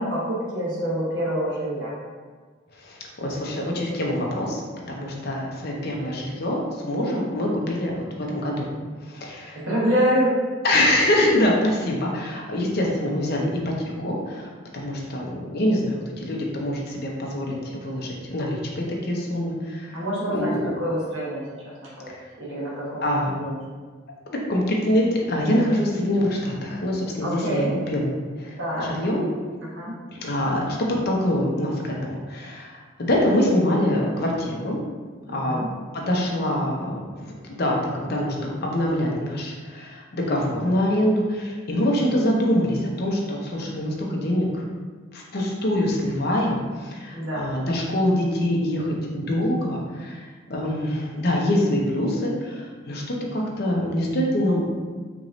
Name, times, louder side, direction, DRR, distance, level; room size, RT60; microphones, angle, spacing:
voice 1, 0.0-1.9 9.7-10.3 19.9-21.4 21.8-22.1 22.4-23.0 23.4-23.5 27.2-27.7 28.6-28.9 29.7-29.9 35.5-35.7 47.1-47.4, equal, 85° right, -7 dB, 1.2 m, -26 dB
voice 2, 2.8-4.6 4.9-8.7 9.0-9.6 10.6-20.0 20.3-20.7 22.1-22.2 23.0-23.4 24.3-28.1 28.4-29.2 30.1-34.8 35.3-35.6 35.9-37.0 37.4-44.6 45.1-54.6, left 1 dB, 55° left, -1 dB, 0.7 m, -25 dB
4.6 x 3.0 x 2.6 m, 1.4 s
head